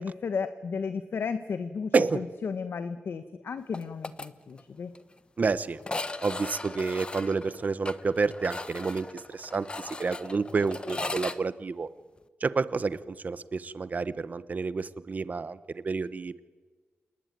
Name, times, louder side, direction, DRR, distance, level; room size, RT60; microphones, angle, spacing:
voice 1, 0.0-4.9, left 5 dB, 60° left, 10 dB, 1.3 m, -34 dB
sound 1, 3.7-4.3 4.6-4.7 4.9-5.0 5.8-11.4, left 3 dB, 25° left, 1.0 m, -38 dB
voice 2, 5.4-5.8 6.2-11.9 12.4-16.4, right 4 dB, 40° right, 15 dB, 1.1 m, -29 dB
28.0 x 20.0 x 9.4 m, 1.4 s
wide cardioid pair, 135°, 4 cm